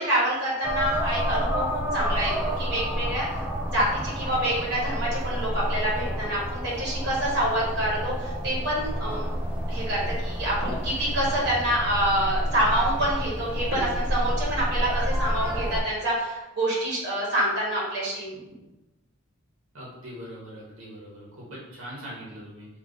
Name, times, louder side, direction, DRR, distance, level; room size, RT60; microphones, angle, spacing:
voice 1, 0.0-1.6 1.9-2.3 2.6-3.3 3.7-9.2 9.7-18.3, right 1 dB, 50° right, -6 dB, 1.3 m, -27 dB
sound 1, 0.6-15.8, equal, 5° right, 0.3 m, -29 dB
voice 2, 19.7-22.7, equal, 70° right, -6 dB, 1.2 m, -41 dB
3.7 x 2.7 x 3.9 m, 1.0 s
head